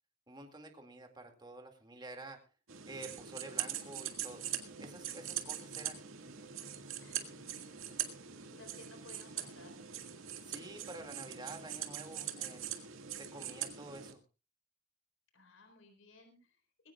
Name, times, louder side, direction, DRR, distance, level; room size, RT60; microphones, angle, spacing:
voice 1, 0.3-2.5 2.9-4.4 4.8-6.0 10.4-12.8 13.1-14.2, right 2 dB, 20° right, 4 dB, 2.2 m, -49 dB
sound 1, 2.7-14.1, right 10 dB, 85° right, 1.8 m, -42 dB
voice 2, 7.0-7.4 8.2-9.8 15.3-16.9, left 2 dB, 80° left, 6 dB, 4.2 m, -58 dB
21.0 x 16.5 x 2.3 m, 0.31 s
head